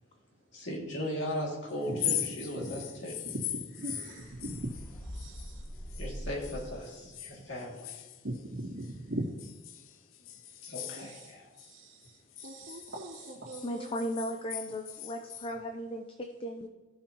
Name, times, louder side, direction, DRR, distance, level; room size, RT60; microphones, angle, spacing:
voice 1, 0.5-3.1 6.0-8.0 10.6-11.5, equal, 65° left, -3 dB, 2.4 m, -37 dB
sound 1, 1.8-6.1 6.4-8.9 9.4-11.7 12.0-15.5, left 12 dB, 85° left, 0.5 m, -40 dB
voice 2, 3.7-4.7 5.1-5.6 8.2-9.2 11.0-11.3 11.6-13.9, right 1 dB, 65° right, -8 dB, 2.3 m, -40 dB
sound 2, 4.2-7.0, equal, 10° left, 1.7 m, -43 dB
voice 3, 13.6-16.7, equal, 25° left, 5 dB, 0.5 m, -36 dB
15.0 x 5.7 x 2.9 m, 1.3 s
head